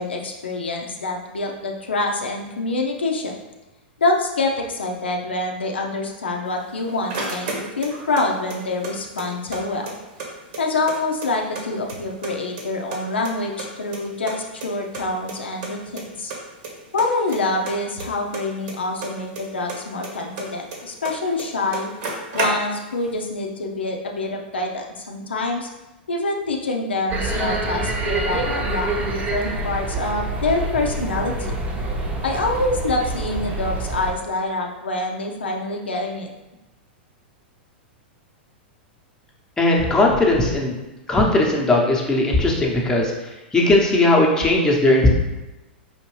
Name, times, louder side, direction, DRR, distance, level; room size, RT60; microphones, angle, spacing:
voice 1, 0.0-3.3 4.0-9.9 10.6-16.3 16.9-21.9 22.3-25.7 26.1-31.5 32.2-36.3, left 2 dB, 85° left, 1 dB, 0.6 m, -26 dB
sound 1, 6.5-8.2 8.5-9.6 9.9-10.0 10.2-11.6 11.9-12.6 12.9-14.3 14.6-14.7 14.9-15.0 15.3-15.4 15.6-16.0 16.3-16.7 17.0-19.4 19.7-21.1 21.4-21.5 21.7-22.9, right 3 dB, 55° right, 1.1 m, -31 dB
sound 2, 27.1-34.1, right 2 dB, 30° right, 0.8 m, -26 dB
voice 2, 39.6-40.8 41.1-43.1 43.5-45.1, left 2 dB, 10° left, -2 dB, 0.8 m, -18 dB
4.9 x 2.7 x 3.1 m, 1.0 s
hypercardioid pair, 105°, 6 cm